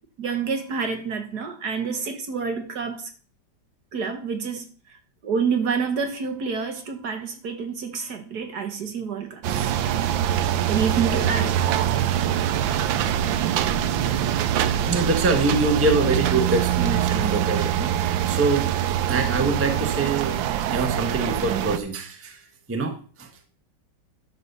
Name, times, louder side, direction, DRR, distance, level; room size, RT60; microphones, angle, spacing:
voice 1, 0.2-3.1 3.9-5.0 5.2-9.7 10.7-11.7, right 5 dB, 55° right, 1.6 m, -28 dB
sound 1, 9.4-21.8, right 10 dB, 80° right, 1.4 m, -24 dB
voice 2, 14.7-18.7 19.1-20.3 20.7-22.4 22.7-23.3, right 3 dB, 10° right, 0.9 m, -25 dB
10.5 x 4.1 x 6.8 m
omnidirectional pair, 2.1 m